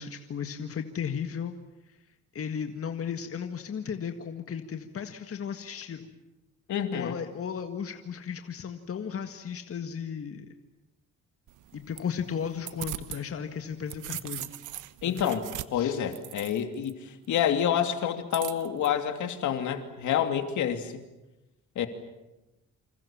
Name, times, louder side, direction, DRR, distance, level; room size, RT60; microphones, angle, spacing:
voice 1, 0.0-1.6 2.3-6.1 6.9-10.5 11.7-14.5 15.0-15.2 15.7-16.0, left 7 dB, 50° left, 6 dB, 1.8 m, -35 dB
voice 2, 6.7-7.2 15.0-15.4 15.7-20.9 21.7-21.9, left 9 dB, 75° left, 7 dB, 2.9 m, -28 dB
sound 1, 11.5-13.2 13.6-16.9 18.3-18.9, right 14 dB, 80° right, 1.2 m, -40 dB
27.5 x 27.0 x 7.4 m, 1.0 s
cardioid pair, 90°, 30 cm